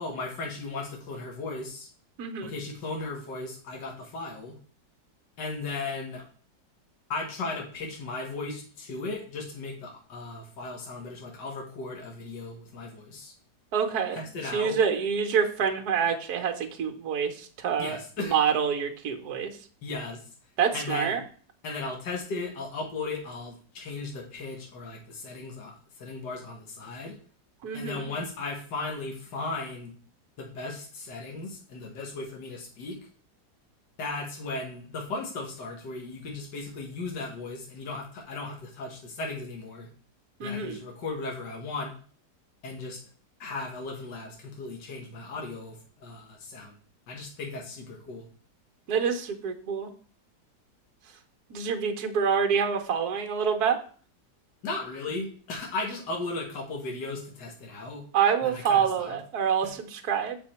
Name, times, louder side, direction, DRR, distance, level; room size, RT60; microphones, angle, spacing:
voice 1, 0.0-1.9 2.4-4.6 5.4-6.2 7.1-13.3 14.1-14.8 17.8-18.4 19.8-20.2 20.7-21.1 21.6-27.2 27.7-29.9 30.4-33.0 34.0-39.9 40.4-41.9 42.6-43.0 43.4-46.7 47.1-48.3 54.6-58.0 58.4-59.2, left 3 dB, 75° left, 0 dB, 2.1 m, -36 dB
voice 2, 2.2-2.5 13.7-14.2 14.5-19.5 20.6-21.2 27.6-28.1 40.4-40.8 48.9-49.9 51.5-53.8 58.1-60.4, right 7 dB, 65° right, 5 dB, 1.5 m, -27 dB
7.1 x 5.5 x 4.3 m, 0.42 s
omnidirectional pair, 1.8 m